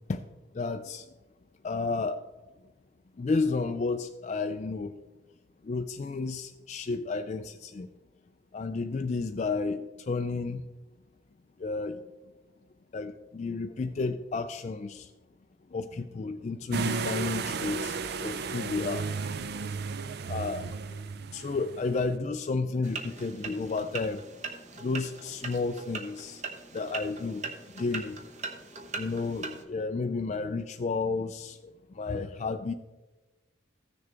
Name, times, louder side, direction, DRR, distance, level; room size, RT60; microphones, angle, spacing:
voice 1, 0.5-1.1 1.6-2.2 3.2-4.9 5.6-7.9 8.5-10.6 11.6-12.0 12.9-15.1 15.7-19.1 20.3-21.0 21.3-24.2 24.8-26.4 26.7-27.4 27.8-28.2 28.9-32.7, left 3 dB, 35° left, 6 dB, 0.3 m, -32 dB
sound 1, 16.7-22.1, right 4 dB, 55° right, 0.4 m, -34 dB
sound 2, 22.8-29.6, right 4 dB, 35° right, 0.9 m, -40 dB
15.0 x 6.6 x 3.4 m, 1.2 s
head